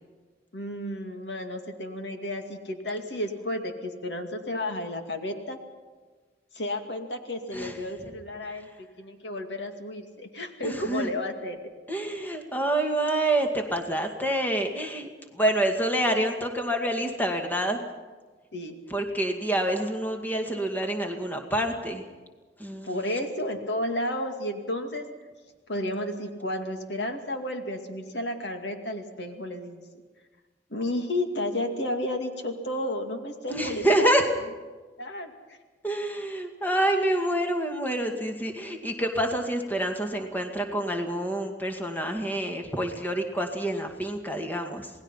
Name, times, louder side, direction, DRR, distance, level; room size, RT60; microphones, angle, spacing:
voice 1, 0.5-5.6 6.5-8.7 9.0-11.6 18.5-18.8 22.8-25.1 25.7-29.8 30.7-34.1 35.0-35.6, left 1 dB, 75° left, 5 dB, 2.4 m, -32 dB
voice 2, 10.6-11.1 11.9-15.1 15.3-17.8 18.9-22.0 22.6-23.0 33.5-34.2 35.8-44.9, right 1 dB, 10° left, 3 dB, 2.2 m, -27 dB
27.5 x 19.0 x 5.7 m, 1.4 s
head